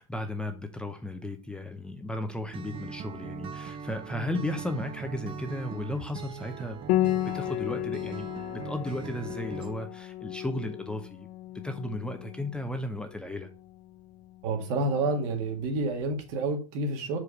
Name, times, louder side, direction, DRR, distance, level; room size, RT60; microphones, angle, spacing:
voice 1, 0.0-11.3 11.6-13.5, left 1 dB, 5° left, 6 dB, 0.7 m, -35 dB
Acoustic guitar, 2.5-9.7, right 6 dB, 30° right, 0.7 m, -40 dB
Piano, 6.9-16.2, left 15 dB, 55° left, 0.4 m, -34 dB
voice 2, 14.4-17.2, right 2 dB, 60° right, 4 dB, 1.8 m, -29 dB
4.9 x 4.9 x 4.7 m, 0.35 s
supercardioid pair, 130°, 17 cm